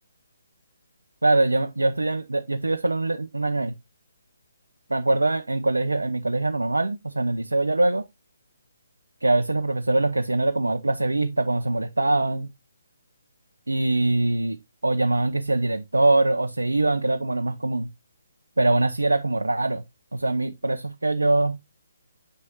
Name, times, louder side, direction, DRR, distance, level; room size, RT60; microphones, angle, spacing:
voice 1, 1.2-3.7 4.9-8.0 9.2-12.5 13.7-14.6 14.8-17.9 18.6-19.8 20.1-21.6, right 2 dB, 85° right, 0.7 m, -23 dB
6.6 x 6.4 x 2.9 m
figure-of-eight pair, 145°, 0 cm